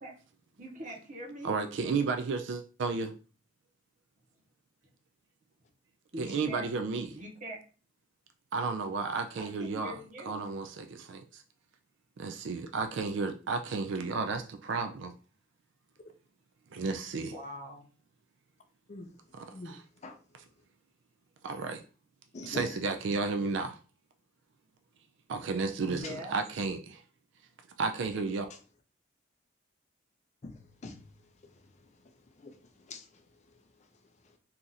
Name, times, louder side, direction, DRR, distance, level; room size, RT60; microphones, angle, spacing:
voice 1, 0.6-1.6 6.1-6.7 7.1-7.6 9.4-10.4 17.3-17.8 25.9-26.3, right 1 dB, 40° right, 1.0 m, -42 dB
voice 2, 1.4-3.1 6.2-7.2 8.5-10.0 10.3-11.4 12.2-15.1 16.7-17.3 19.3-19.8 21.4-21.8 22.4-23.8 25.3-27.0 27.8-28.5, right 4 dB, 60° right, 0.3 m, -33 dB
voice 3, 22.3-22.7 26.0-26.1 30.4-31.1 31.4-31.6 32.4-33.2, left 2 dB, 35° left, 0.4 m, -44 dB
2.9 x 2.5 x 3.9 m
head